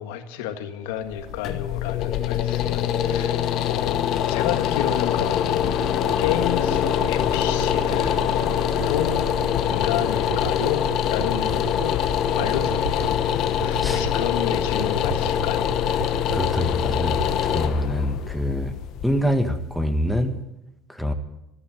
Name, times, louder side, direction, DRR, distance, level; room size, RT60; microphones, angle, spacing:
voice 1, 0.0-5.9 6.2-8.2 8.9-9.2 9.6-11.7 12.3-13.2 13.6-15.7, left 10 dB, 80° left, 8 dB, 1.6 m, -30 dB
sound 1, 1.0-20.0, left 9 dB, 50° left, 1.1 m, -24 dB
sound 2, 5.2-17.7, right 9 dB, 85° right, 0.7 m, -37 dB
voice 2, 16.3-18.7 19.0-20.3 20.9-21.1, left 1 dB, ahead, 8 dB, 1.6 m, -25 dB
14.0 x 9.7 x 9.3 m, 0.92 s
supercardioid pair, 115°, 0 cm